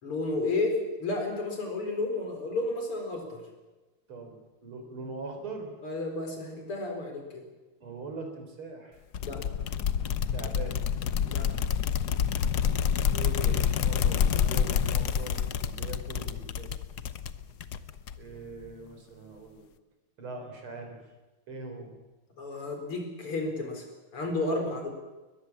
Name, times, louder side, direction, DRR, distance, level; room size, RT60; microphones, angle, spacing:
voice 1, 0.0-3.4 5.8-7.4 9.2-9.4 11.2-11.5 22.4-24.9, left 2 dB, 85° left, 3 dB, 5.4 m, -32 dB
voice 2, 4.1-5.7 7.8-9.0 10.3-10.8 13.1-16.7 18.2-19.7 20.2-21.1 21.5-21.9 24.6-24.7, right 3 dB, 70° right, 4 dB, 4.8 m, -41 dB
sound 1, 9.1-18.4, left 8 dB, 60° left, 1.2 m, -28 dB
22.0 x 21.0 x 7.4 m, 1.2 s
omnidirectional pair, 2.4 m